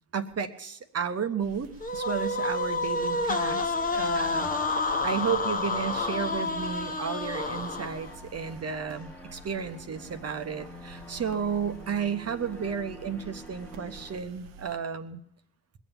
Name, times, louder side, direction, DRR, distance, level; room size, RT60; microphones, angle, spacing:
voice 1, 0.1-4.5 4.8-15.2, right 7 dB, 45° right, 8 dB, 1.2 m, -33 dB
sound 1, 1.4-14.8, right 3 dB, 75° right, 0.9 m, -50 dB
sound 2, 1.8-8.1, left 3 dB, 25° left, 1.2 m, -29 dB
sound 3, 3.0-14.2, equal, 5° left, 1.5 m, -48 dB
21.0 x 7.3 x 7.3 m, 0.74 s
supercardioid pair, 55°, 34 cm